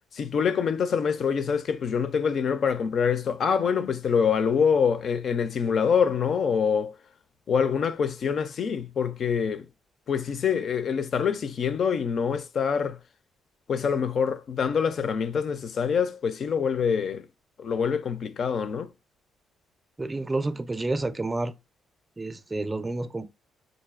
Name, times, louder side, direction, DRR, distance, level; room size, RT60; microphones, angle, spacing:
voice 1, 0.1-6.9 7.5-9.7 10.1-13.0 13.7-17.3 17.6-18.9, left 6 dB, 55° left, 0.4 m, -25 dB
voice 2, 20.0-21.5 22.2-23.3, right 2 dB, 20° right, 0.4 m, -29 dB
4.0 x 2.6 x 2.4 m
cardioid pair, 90°, 0 cm